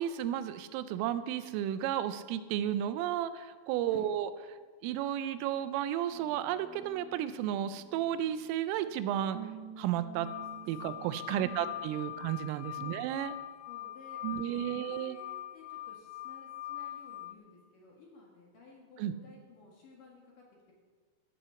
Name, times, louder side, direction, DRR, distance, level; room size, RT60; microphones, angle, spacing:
voice 1, 0.0-4.3 4.8-9.4 9.8-10.3 10.7-13.3 14.2-15.2 19.0-19.1, right 11 dB, 90° right, 12 dB, 3.3 m, -33 dB
sound 1, 6.1-12.4, right 7 dB, 60° right, 2.8 m, -51 dB
sound 2, 10.2-17.3, left 13 dB, 75° left, 2.7 m, -43 dB
voice 2, 11.3-11.7 12.0-12.1 12.7-13.0 13.6-20.7, left 4 dB, 55° left, -2 dB, 2.8 m, -55 dB
13.5 x 8.6 x 7.0 m, 1.5 s
omnidirectional pair, 5.8 m